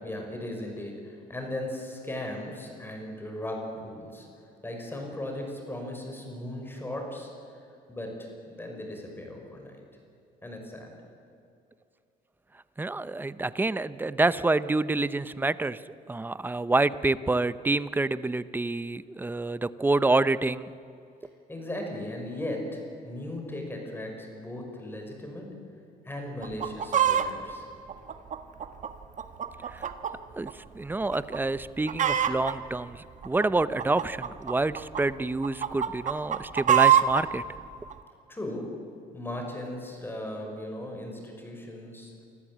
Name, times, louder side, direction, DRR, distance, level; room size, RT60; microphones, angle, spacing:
voice 1, 0.0-4.3 4.6-7.3 7.9-9.8 10.4-11.0 21.5-25.5 26.0-27.6 38.3-38.6 39.1-42.1, left 1 dB, 10° left, 2 dB, 5.7 m, -37 dB
voice 2, 12.8-15.8 16.1-20.7 30.4-30.5 30.8-37.4, right 2 dB, 10° right, 16 dB, 0.7 m, -27 dB
Chicken rooster, 26.4-27.3 27.9-30.1 30.5-30.6 31.1-31.4 31.6-32.5 33.2-35.0 35.4-37.2 37.9-38.0, right 10 dB, 45° right, 1.5 m, -24 dB
25.5 x 14.5 x 8.7 m, 2.6 s
cardioid pair, 110°, 17 cm